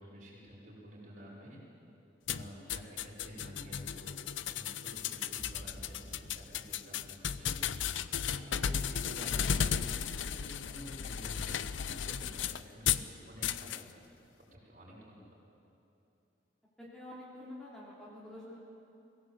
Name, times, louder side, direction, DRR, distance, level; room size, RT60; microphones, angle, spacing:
voice 1, 0.0-1.6 2.3-7.7 8.3-14.0 14.5-15.3, equal, 45° right, -4 dB, 5.9 m, -50 dB
sound 1, 2.3-13.1 13.4-13.8, left 8 dB, 80° left, 0.6 m, -35 dB
sound 2, 5.2-6.5 7.3-10.0, equal, 60° left, 6.4 m, -53 dB
voice 2, 16.8-18.6, left 1 dB, 5° left, -7 dB, 3.3 m, -47 dB
22.5 x 17.0 x 8.2 m, 2.7 s
head